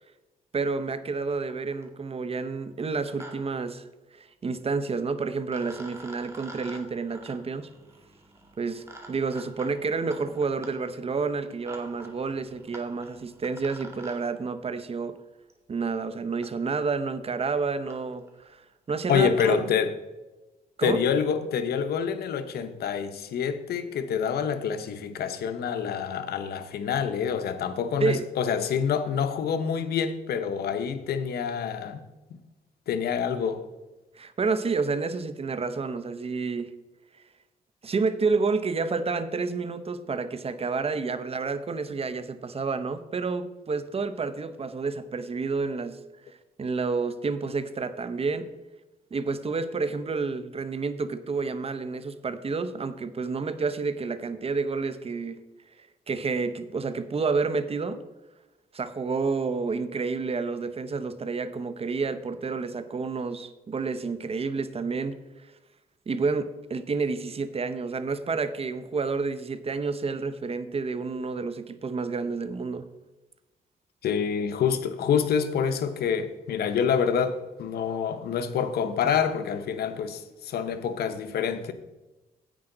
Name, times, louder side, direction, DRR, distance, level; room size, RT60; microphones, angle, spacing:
voice 1, 0.5-3.8 4.2-7.7 8.6-15.2 15.7-18.6 18.9-19.6 20.8-21.0 28.0-28.3 34.2-36.7 37.8-46.0 46.6-48.5 49.1-55.4 56.1-58.0 58.7-65.2 66.1-72.8, right 4 dB, 40° right, 0.8 m, -29 dB
sound 1, 1.5-1.9 2.8-3.3 3.6-3.7 5.0-5.1 5.5-14.2 15.5-15.6 16.4-16.5 17.2-17.3 17.5-17.6 17.9-18.0 18.3-18.5 18.9-19.5, right 2 dB, 15° right, 2.1 m, -47 dB
voice 2, 19.1-19.9 20.8-32.0 32.9-33.6 74.0-81.7, left 7 dB, 85° left, 0.9 m, -27 dB
10.0 x 8.8 x 3.9 m
cardioid pair, 85°, 16 cm